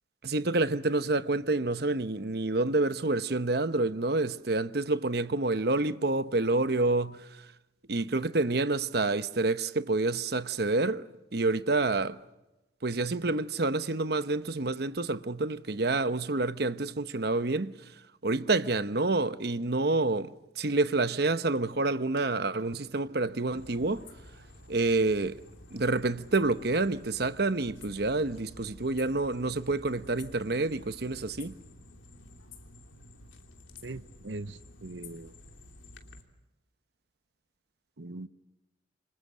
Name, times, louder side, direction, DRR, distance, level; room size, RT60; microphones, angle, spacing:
voice 1, 0.2-7.5 7.9-12.2 12.8-17.9 18.2-24.1 24.7-25.4 25.7-31.5, right 2 dB, 55° right, 1.0 m, -28 dB
sound 1, 23.5-36.2, left 2 dB, 85° left, 3.1 m, -51 dB
voice 2, 33.8-35.3 38.0-38.3, right 2 dB, 80° right, 0.9 m, -41 dB
29.0 x 25.5 x 6.3 m
head